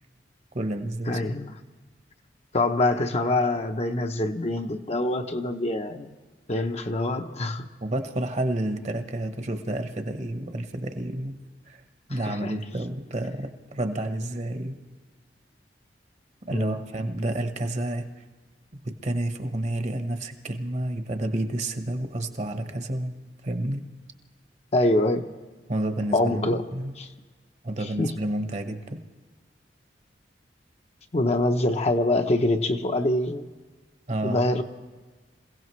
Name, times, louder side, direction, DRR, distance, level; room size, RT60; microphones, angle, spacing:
voice 1, 0.5-1.2 7.8-11.3 11.7-11.8 12.1-14.8 16.5-18.2 18.8-23.1 23.4-23.8 25.7-26.9 27.6-29.0 34.1-34.4, right 1 dB, 40° right, 1.1 m, -30 dB
voice 2, 1.1-1.6 2.5-6.2 6.5-7.7 12.2-12.5 16.5-16.8 24.7-25.3 26.1-26.6 27.0-27.1 28.0-28.1 31.1-33.5 34.2-34.6, left 2 dB, 35° left, 0.8 m, -25 dB
27.5 x 16.5 x 3.2 m
head